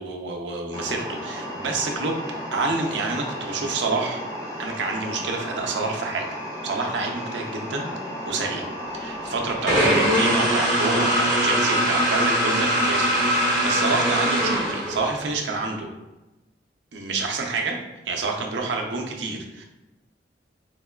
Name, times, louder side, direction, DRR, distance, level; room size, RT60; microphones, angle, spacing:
voice 1, 0.0-2.3 2.5-4.2 4.6-6.3 6.6-7.9 8.3-15.9 16.9-17.8 18.1-19.6, right 3 dB, 85° right, 1 dB, 0.5 m, -28 dB
sound 1, 0.7-10.6, equal, 20° left, 0.5 m, -34 dB
sound 2, 9.7-15.3, equal, 15° right, 1.1 m, -21 dB
4.0 x 2.1 x 2.3 m, 1.0 s
head